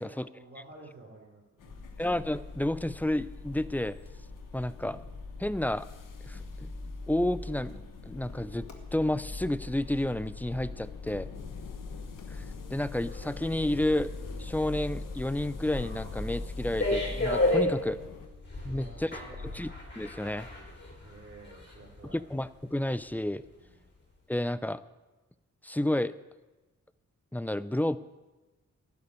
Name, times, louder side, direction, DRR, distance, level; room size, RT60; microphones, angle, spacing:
voice 1, 0.0-1.9 11.3-11.6 18.6-19.7 21.0-22.2 23.5-23.7, right 2 dB, 35° right, -8 dB, 4.4 m, -51 dB
sound 1, 1.6-18.3, left 6 dB, 90° left, 1.2 m, -50 dB
sound 2, 1.7-17.7, left 3 dB, 60° left, 2.1 m, -42 dB
voice 2, 2.0-4.0 4.5-5.0 5.4-5.9 6.2-6.7 7.1-7.7 8.1-11.3 12.3-12.4 12.7-14.1 14.4-18.0 18.6-19.7 20.0-20.5 22.0-23.4 24.3-24.8 25.6-26.1 27.3-28.0, left 1 dB, 5° left, 15 dB, 0.5 m, -31 dB
sound 3, 13.1-22.1 22.5-22.6, left 2 dB, 35° left, 3.5 m, -34 dB
12.5 x 6.9 x 9.5 m, 1.1 s
cardioid pair, 60°, 31 cm